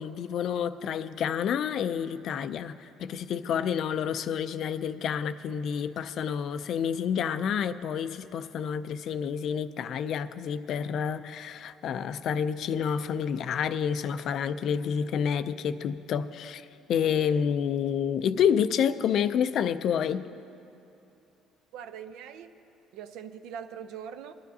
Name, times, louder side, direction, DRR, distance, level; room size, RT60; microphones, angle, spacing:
voice 1, 0.0-20.3, left 8 dB, 55° left, 0.4 m, -29 dB
voice 2, 21.7-22.5 22.9-24.3, right 8 dB, 80° right, 0.6 m, -41 dB
21.5 x 11.5 x 2.7 m
cardioid pair, 150°, 0 cm